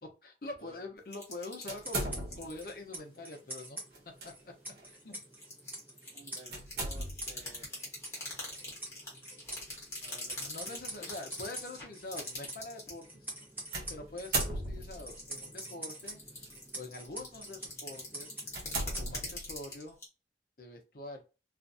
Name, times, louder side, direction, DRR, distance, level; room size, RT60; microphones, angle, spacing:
voice 1, 0.0-3.8 4.2-4.5 4.8-5.2 10.4-13.3 13.9-16.2 16.7-18.4 19.0-20.0 20.6-21.2, left 2 dB, 55° left, 0.7 m, -45 dB
sound 1, 1.1-2.7 3.0-3.2 3.6-3.9 4.2-4.3 5.0-13.0 13.2-13.9 14.4-20.1, left 2 dB, 15° left, 1.1 m, -44 dB
sound 2, 1.7-19.5, right 1 dB, 10° right, 0.9 m, -47 dB
sound 3, 1.7-2.7 3.9-4.3 4.8-4.9 6.5-7.4 9.5-9.8 10.6-10.7 13.7-15.1 16.0-16.5 17.1-17.3 17.8-17.9 18.5-19.7, right 2 dB, 65° right, 1.1 m, -37 dB
voice 2, 6.1-7.7 10.0-10.8, right 2 dB, 35° right, 0.4 m, -54 dB
2.5 x 2.3 x 2.6 m
head